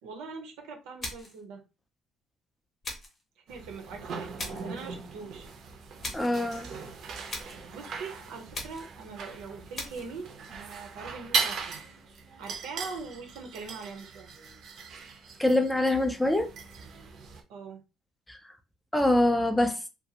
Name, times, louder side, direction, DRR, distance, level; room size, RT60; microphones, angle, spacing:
voice 1, 0.0-1.6 3.5-5.5 7.7-11.8 12.4-14.3 17.5-17.8, right 4 dB, 80° right, 0.7 m, -42 dB
sound 1, 1.0-1.4 2.8-3.2 4.4-4.8 6.0-6.4 7.3-7.7 8.5-9.0 9.7-10.1, left 2 dB, 25° left, 0.7 m, -39 dB
sound 2, 3.5-17.4, right 5 dB, 45° right, 0.5 m, -38 dB
voice 2, 6.1-6.7 15.4-16.5 18.3-18.4 18.9-19.8, left 1 dB, 5° left, 0.3 m, -24 dB
2.6 x 2.4 x 2.8 m
cardioid pair, 160°, 0 cm